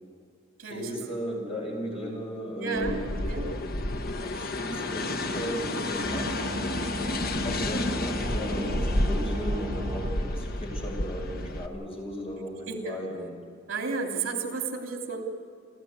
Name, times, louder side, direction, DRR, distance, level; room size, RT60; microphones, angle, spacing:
voice 1, 0.7-3.3 4.2-6.4 7.0-13.4, equal, 30° left, 0 dB, 6.2 m, -36 dB
voice 2, 2.6-3.5 12.7-13.0 13.7-15.2, right 4 dB, 75° right, 2 dB, 3.1 m, -32 dB
sound 1, 2.7-11.7, left 1 dB, 50° left, 1.3 m, -30 dB
sound 2, 6.0-10.1, equal, 25° right, 1.1 m, -37 dB
29.0 x 14.0 x 8.2 m, 2.4 s
head